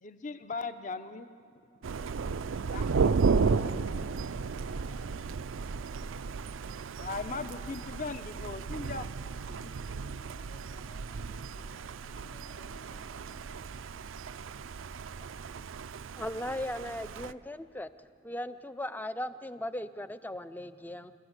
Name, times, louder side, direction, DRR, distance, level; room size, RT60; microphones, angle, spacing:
voice 1, 0.0-1.3 1.9-2.1 2.7-3.6 7.0-9.1 9.5-9.7, left 3 dB, 40° left, 11 dB, 0.7 m, -39 dB
Thunder, 1.8-17.3, right 5 dB, 80° right, 0.5 m, -34 dB
voice 2, 2.7-5.3 7.1-8.2 9.4-13.6, left 2 dB, 70° left, 1 dB, 3.2 m, -58 dB
voice 3, 16.2-17.9 18.2-21.1, left 1 dB, 10° left, 12 dB, 0.4 m, -37 dB
27.5 x 13.5 x 8.1 m, 2.4 s
head